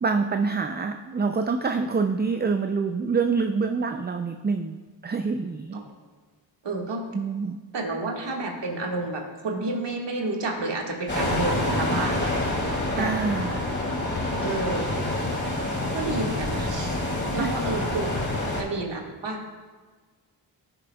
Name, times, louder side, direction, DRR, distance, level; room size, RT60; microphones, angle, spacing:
voice 1, 0.0-5.8 7.1-7.6 12.9-13.7 17.4-17.6, right 4 dB, 20° right, 6 dB, 0.5 m, -26 dB
voice 2, 6.6-7.1 7.7-12.3 12.9-13.1 14.4-15.0 15.9-17.0 17.3-18.1 18.5-19.4, right 2 dB, 65° right, 0 dB, 1.8 m, -30 dB
sound 1, 11.1-18.6, left 1 dB, 25° left, 2.6 m, -27 dB
14.5 x 6.9 x 2.3 m, 1.4 s
supercardioid pair, 45°, 46 cm